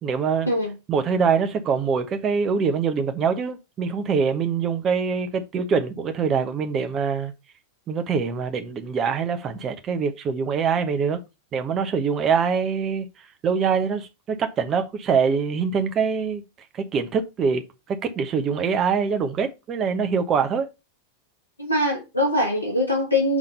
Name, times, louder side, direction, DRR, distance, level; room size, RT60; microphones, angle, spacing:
voice 1, 0.0-0.5 0.9-7.3 7.9-11.2 11.5-13.1 13.4-16.4 16.9-20.7, right 6 dB, 30° right, 1.1 m, -24 dB
voice 2, 21.6-23.4, left 1 dB, 85° left, 1.9 m, -22 dB
6.1 x 3.7 x 5.5 m
figure-of-eight pair, 90°, 0 cm